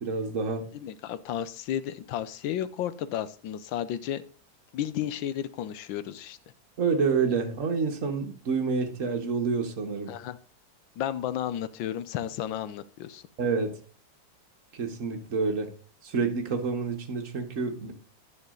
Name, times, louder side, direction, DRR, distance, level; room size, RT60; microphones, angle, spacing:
voice 1, 0.0-0.7 6.8-10.1 13.4-13.8 14.7-15.7 16.0-17.9, right 5 dB, 45° right, 4 dB, 1.5 m, -28 dB
voice 2, 0.7-4.2 4.7-6.4 10.1-10.4 11.0-13.2, left 10 dB, 90° left, 14 dB, 1.4 m, -33 dB
10.5 x 6.3 x 3.8 m, 0.41 s
omnidirectional pair, 2.1 m